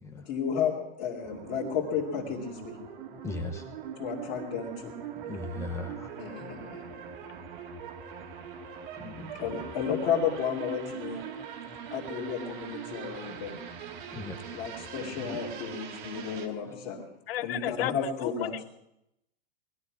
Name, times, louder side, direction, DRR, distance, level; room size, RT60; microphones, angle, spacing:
voice 1, 0.3-2.8 4.0-4.9 6.2-6.8 9.4-11.2 11.9-13.6 14.5-17.0 17.4-18.5, left 7 dB, 30° left, -5 dB, 2.6 m, -32 dB
sound 1, 1.2-16.5, right 7 dB, 50° right, 2.1 m, -42 dB
voice 2, 3.2-3.6 5.3-6.1 9.0-9.3 14.1-14.6 15.2-15.4, left 2 dB, 10° left, 4 dB, 1.0 m, -38 dB
voice 3, 17.3-18.6, left 13 dB, 65° left, 17 dB, 0.7 m, -33 dB
20.0 x 13.0 x 4.9 m, 0.82 s
supercardioid pair, 170°, 32 cm